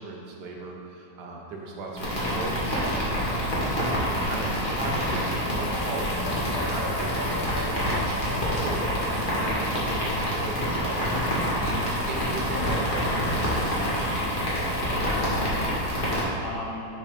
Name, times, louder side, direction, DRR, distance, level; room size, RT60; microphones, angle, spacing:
voice 1, 0.0-14.0, right 2 dB, 70° right, 0 dB, 1.3 m, -38 dB
sound 1, 1.8-4.6 5.1-7.9, left 2 dB, 50° right, 0.9 m, -45 dB
sound 2, 2.0-16.2, equal, 30° left, 1.3 m, -27 dB
sound 3, 5.3-9.2, equal, 15° left, 0.7 m, -42 dB
voice 2, 14.6-16.9, left 2 dB, 70° left, -4 dB, 0.7 m, -39 dB
6.4 x 3.7 x 5.0 m, 2.6 s
omnidirectional pair, 1.9 m